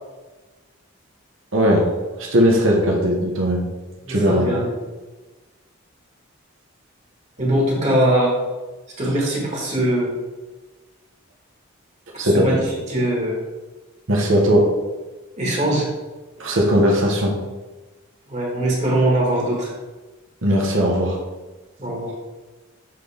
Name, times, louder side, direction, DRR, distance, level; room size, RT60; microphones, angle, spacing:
voice 1, 1.5-1.9 2.2-3.7 4.1-4.5 12.2-12.6 14.1-14.7 16.4-17.4 20.4-21.2, equal, 65° right, -1 dB, 1.2 m, -18 dB
voice 2, 4.1-4.7 7.4-8.3 9.0-10.1 12.1-13.3 15.4-15.9 18.3-19.7 21.8-22.1, right 1 dB, 35° right, -3 dB, 1.6 m, -21 dB
7.6 x 3.9 x 3.4 m, 1.2 s
head